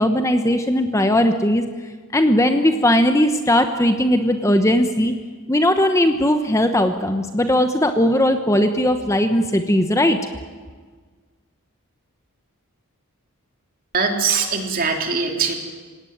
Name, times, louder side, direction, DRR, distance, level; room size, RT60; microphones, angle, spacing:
voice 1, 0.0-1.6 2.1-5.1 5.5-10.2, left 1 dB, 15° left, 7 dB, 1.1 m, -18 dB
voice 2, 13.9-15.5, right 5 dB, 40° right, 3 dB, 3.5 m, -21 dB
27.0 x 17.5 x 9.5 m, 1.5 s
head